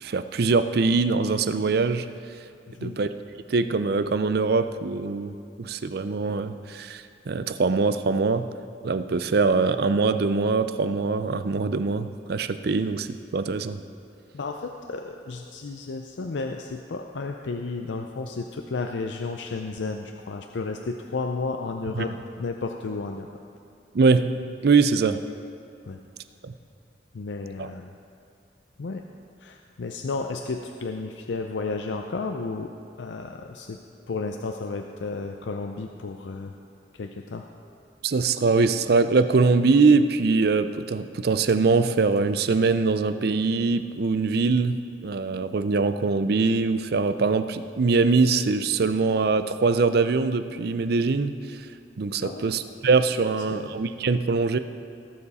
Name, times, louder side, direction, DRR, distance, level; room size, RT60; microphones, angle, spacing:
voice 1, 0.0-2.1 2.8-3.1 3.5-8.5 8.8-13.1 13.3-13.8 22.0-22.1 23.9-24.4 24.6-25.2 26.4-26.5 27.6-27.7 38.0-51.3 52.0-54.6, right 4 dB, 60° right, 11 dB, 0.5 m, -23 dB
voice 2, 14.3-23.3 25.0-25.2 25.9-26.0 27.1-28.0 28.8-29.0 29.4-32.7 33.0-33.8 34.1-36.5 36.9-37.4 52.2-52.5 53.5-53.8, left 3 dB, 85° left, 4 dB, 0.5 m, -32 dB
18.0 x 7.1 x 4.2 m, 2.4 s
head